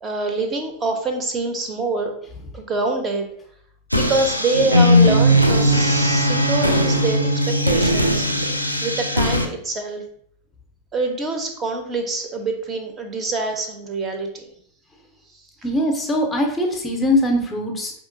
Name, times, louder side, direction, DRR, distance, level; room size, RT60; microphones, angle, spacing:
voice 1, 0.0-2.1 2.5-3.3 3.9-8.3 8.8-10.0 10.9-14.5, right 3 dB, 25° right, 5 dB, 0.7 m, -25 dB
sound 1, 3.9-9.5, equal, 90° right, 0.4 m, -18 dB
voice 2, 15.6-17.9, left 1 dB, 15° left, 2 dB, 0.6 m, -21 dB
4.9 x 2.8 x 2.6 m, 0.65 s
figure-of-eight pair, 90°, 0 cm